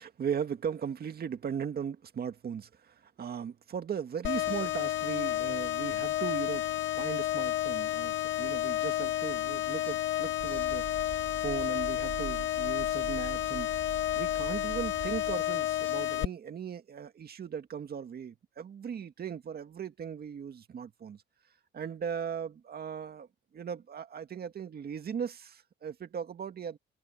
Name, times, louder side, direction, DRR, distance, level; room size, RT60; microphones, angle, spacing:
voice 1, 0.0-6.7 6.9-10.8 11.4-13.7 14.1-21.2 21.7-23.3 23.5-26.8, right 7 dB, 50° right, 2.0 m, -38 dB
sound 1, 4.2-16.2, left 13 dB, 75° left, 1.4 m, -31 dB
sound 2, 10.4-15.4, right 9 dB, 65° right, 4.0 m, -44 dB
cardioid pair, 90°, 20 cm